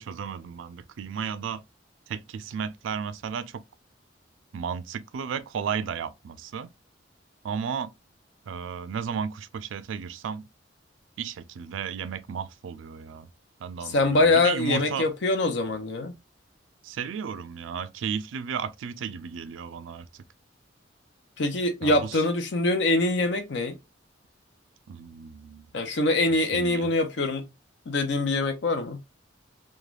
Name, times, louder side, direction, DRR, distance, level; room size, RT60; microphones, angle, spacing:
voice 1, 0.0-1.6 2.1-3.6 4.5-6.7 7.4-7.9 8.5-10.4 11.2-13.3 13.6-15.1 16.8-20.1 21.8-22.2 24.9-25.7 26.4-26.9, right 7 dB, 85° right, 0.3 m, -34 dB
voice 2, 13.9-16.1 21.4-23.8 25.7-27.5 27.9-29.0, left 2 dB, 65° left, 0.6 m, -24 dB
3.1 x 2.3 x 2.3 m
head